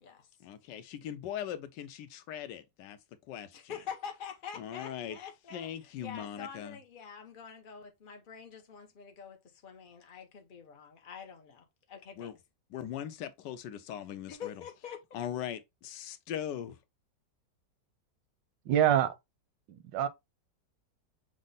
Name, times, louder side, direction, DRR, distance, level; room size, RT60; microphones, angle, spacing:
voice 1, 0.4-3.0 3.3-3.7 4.6-5.2 5.5-6.8 12.1-12.4 12.7-14.5 15.1-16.8, left 10 dB, 80° left, 1.3 m, -40 dB
voice 2, 3.5-12.3 14.3-15.2, left 7 dB, 55° left, 0.5 m, -46 dB
voice 3, 18.7-19.1 19.7-20.1, right 10 dB, 85° right, 1.4 m, -26 dB
6.3 x 2.1 x 3.9 m
omnidirectional pair, 1.9 m